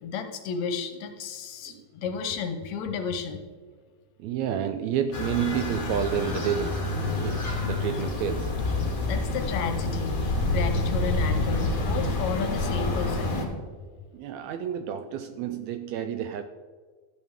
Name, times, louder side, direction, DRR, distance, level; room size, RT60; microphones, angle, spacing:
voice 1, 0.0-3.4 9.0-13.3, left 6 dB, 75° left, 7 dB, 1.9 m, -32 dB
voice 2, 4.2-8.8 14.1-16.4, right 9 dB, 80° right, 8 dB, 1.6 m, -30 dB
sound 1, 5.1-13.4, left 2 dB, 45° left, 1.2 m, -28 dB
13.0 x 8.5 x 3.6 m, 1.5 s
omnidirectional pair, 3.6 m